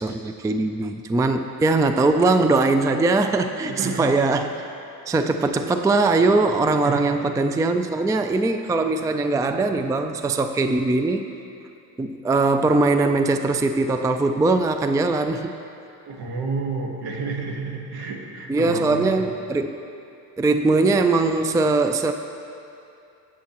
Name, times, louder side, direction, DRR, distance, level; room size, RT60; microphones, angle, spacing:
voice 1, 0.0-4.6 5.1-11.3 12.0-15.6 18.5-19.8 20.4-22.1, right 3 dB, 10° right, 7 dB, 0.4 m, -21 dB
voice 2, 3.6-4.4 6.8-7.3 16.0-19.2, right 4 dB, 65° right, 1 dB, 1.6 m, -31 dB
20.0 x 7.5 x 3.0 m, 2.6 s
supercardioid pair, 85°, 41 cm